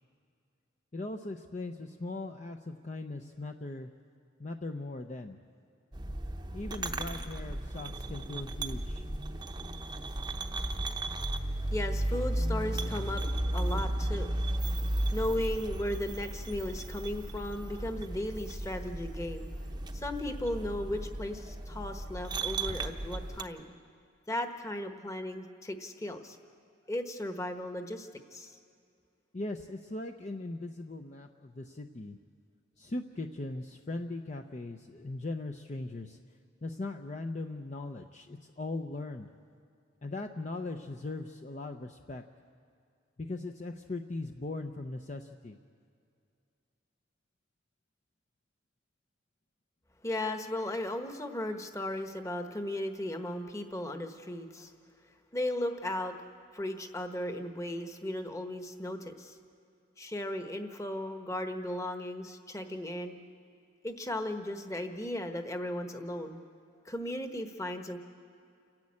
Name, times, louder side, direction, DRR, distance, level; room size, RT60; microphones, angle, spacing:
voice 1, 0.9-3.9 4.4-5.4 6.5-9.1 29.3-32.2 32.8-36.2 36.6-39.3 40.0-42.2 43.2-45.6, left 2 dB, 35° left, 4 dB, 0.6 m, -39 dB
sound 1, 5.9-23.4, right 1 dB, 20° right, 0.8 m, -35 dB
voice 2, 11.7-14.4 14.6-14.7 15.0-19.5 19.9-23.7 24.3-26.4 26.9-28.6 50.0-54.7 55.3-56.2 56.5-59.4 60.0-63.2 63.8-66.4 66.8-68.0, left 1 dB, 15° left, 6 dB, 1.1 m, -36 dB
29.5 x 10.5 x 8.6 m, 2.3 s
head